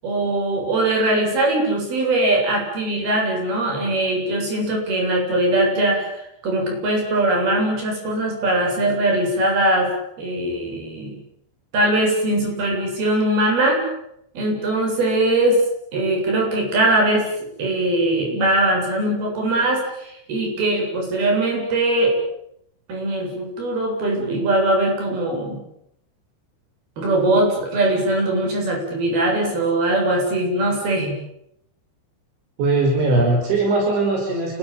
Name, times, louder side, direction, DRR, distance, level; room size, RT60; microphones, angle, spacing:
voice 1, 0.0-9.9 10.2-11.2 11.7-13.8 14.3-15.6 15.9-17.3 17.6-22.1 22.9-25.6 27.0-31.1, right 1 dB, 55° right, 1 dB, 9.7 m, -21 dB
voice 2, 32.6-34.6, right 2 dB, 75° right, 1 dB, 7.5 m, -20 dB
29.0 x 22.0 x 9.1 m, 0.78 s
omnidirectional pair, 5.3 m